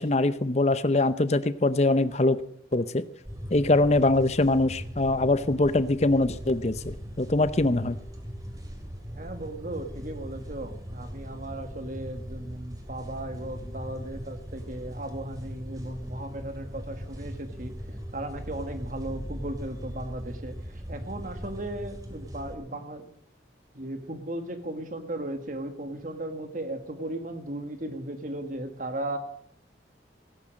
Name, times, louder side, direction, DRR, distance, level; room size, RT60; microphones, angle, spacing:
voice 1, 0.0-2.4 2.7-3.0 3.5-8.0, left 2 dB, 35° left, 14 dB, 0.7 m, -23 dB
sound 1, 3.2-22.5, equal, 20° right, 2.4 m, -40 dB
voice 2, 9.2-23.1 23.7-29.2, right 1 dB, 45° right, 7 dB, 1.8 m, -36 dB
17.5 x 9.8 x 6.4 m, 0.67 s
head